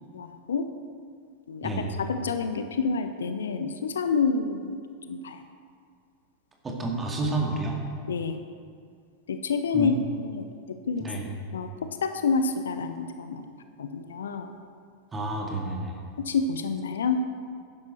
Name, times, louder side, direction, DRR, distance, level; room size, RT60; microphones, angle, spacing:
voice 1, 0.1-0.7 1.5-1.7 2.1-4.8 5.1-5.4 8.1-8.4 9.3-10.5 10.9-11.0 11.5-11.7 12.0-13.4 13.8-14.5 16.2-17.2, left 5 dB, 65° left, 8 dB, 0.7 m, -28 dB
voice 2, 1.6-1.9 6.6-7.8 9.7-9.9 11.0-11.3 15.1-16.0, right 2 dB, 15° right, 0 dB, 2.4 m, -30 dB
12.5 x 10.5 x 4.5 m, 2.2 s
figure-of-eight pair, 90°, 0 cm